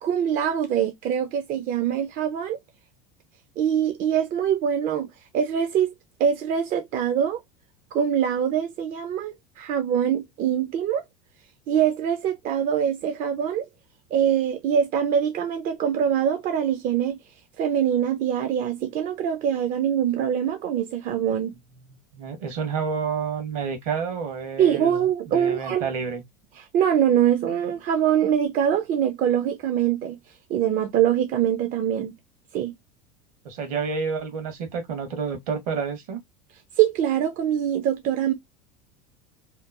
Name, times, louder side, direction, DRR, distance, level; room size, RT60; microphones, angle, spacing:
voice 1, 0.0-2.6 3.6-5.1 5.3-5.9 6.2-7.4 7.9-11.0 11.7-13.7 14.1-17.2 17.6-21.5 24.6-25.9 26.6-30.2 30.5-32.1 32.5-32.7 36.8-38.3, right 9 dB, 40° right, 0.5 m, -23 dB
voice 2, 22.1-26.2 33.4-36.2, right 5 dB, 65° right, 1.2 m, -29 dB
2.9 x 2.0 x 2.3 m
hypercardioid pair, 85°, 20 cm